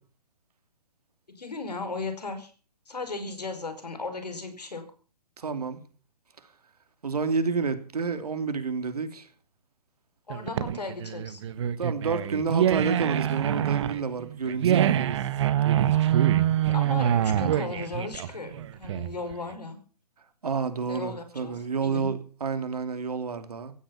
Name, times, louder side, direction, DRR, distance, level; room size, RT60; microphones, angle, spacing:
voice 1, 1.3-2.5 2.9-4.8 10.3-11.4 15.9-16.3 16.7-19.8 20.9-22.1, left 3 dB, 80° left, 5.1 m, -36 dB
voice 2, 5.4-5.8 7.0-9.3 11.8-15.2 20.4-23.7, right 5 dB, 70° right, 3.1 m, -29 dB
sound 1, 10.3-19.3, right 11 dB, 45° right, 1.4 m, -25 dB
16.0 x 12.0 x 7.2 m
figure-of-eight pair, 135°, 21 cm